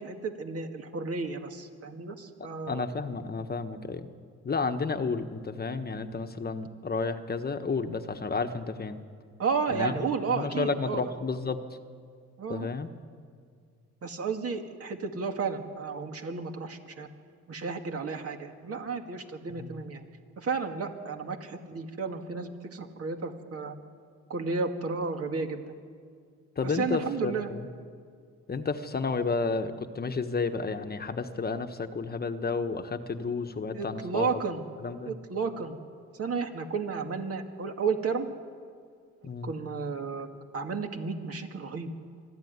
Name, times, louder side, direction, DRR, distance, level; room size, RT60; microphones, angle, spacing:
voice 1, 0.0-2.8 9.4-11.1 12.4-12.7 14.0-17.1 17.5-20.0 20.4-23.7 24.3-25.7 26.6-27.5 33.7-34.6 35.1-35.8 36.2-38.3 39.4-40.3 40.5-41.9, right 5 dB, 50° right, 5 dB, 2.2 m, -32 dB
voice 2, 2.7-4.1 4.4-9.0 9.7-9.9 10.3-11.6 12.5-12.9 19.5-19.7 26.6-27.7 28.5-34.4 34.8-35.1 39.2-39.5, left 4 dB, 30° left, 8 dB, 1.2 m, -31 dB
24.5 x 13.5 x 9.6 m, 2.1 s
cardioid pair, 90°, 30 cm